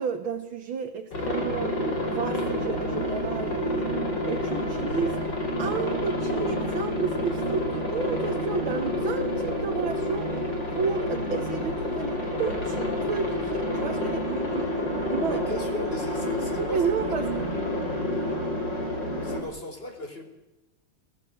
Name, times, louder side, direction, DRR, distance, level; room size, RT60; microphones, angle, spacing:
voice 1, 0.0-10.4 10.7-15.4 16.6-17.3, right 6 dB, 90° right, 2.3 m, -32 dB
Aircraft, 1.1-19.4, left 1 dB, 60° left, 5.7 m, -29 dB
voice 2, 15.2-17.2 19.2-20.2, left 2 dB, 30° left, 4.2 m, -36 dB
28.5 x 18.0 x 8.1 m
omnidirectional pair, 2.2 m